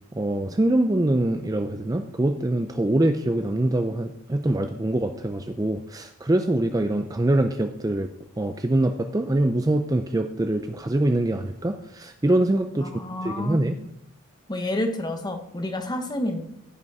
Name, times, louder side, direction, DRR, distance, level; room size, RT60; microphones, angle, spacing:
voice 1, 0.1-8.1 8.4-12.9 13.2-13.8, right 1 dB, 15° right, 7 dB, 0.4 m, -24 dB
voice 2, 12.8-13.7 14.5-16.4, left 1 dB, 20° left, 6 dB, 0.9 m, -29 dB
15.0 x 5.2 x 4.8 m, 0.78 s
head